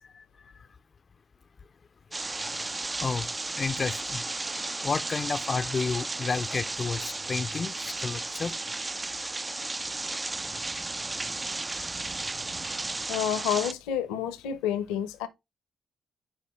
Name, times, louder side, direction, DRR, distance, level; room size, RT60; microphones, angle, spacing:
sound 1, 2.1-13.7, right 2 dB, 25° right, 0.4 m, -34 dB
voice 1, 3.0-4.2 4.8-8.5 11.1-11.2, left 5 dB, 45° left, 0.4 m, -31 dB
voice 2, 13.1-15.3, left 10 dB, 80° left, 0.7 m, -29 dB
9.7 x 3.3 x 3.1 m
hypercardioid pair, 40°, 0 cm